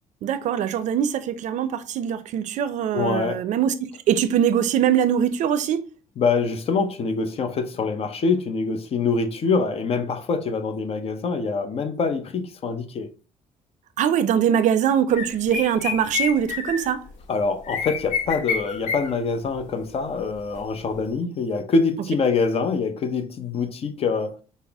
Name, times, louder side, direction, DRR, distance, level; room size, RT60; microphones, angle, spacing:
voice 1, 0.2-5.8 14.0-17.0, right 9 dB, 70° right, 0.5 m, -22 dB
voice 2, 2.9-3.4 6.2-13.1 17.3-24.4, left 4 dB, 50° left, 0.6 m, -25 dB
sound 1, 15.1-17.1 17.7-19.2 19.4-19.6 20.4-20.5 20.9-21.0, left 6 dB, 75° left, 0.9 m, -28 dB
5.5 x 2.0 x 3.4 m
cardioid pair, 85°, 13 cm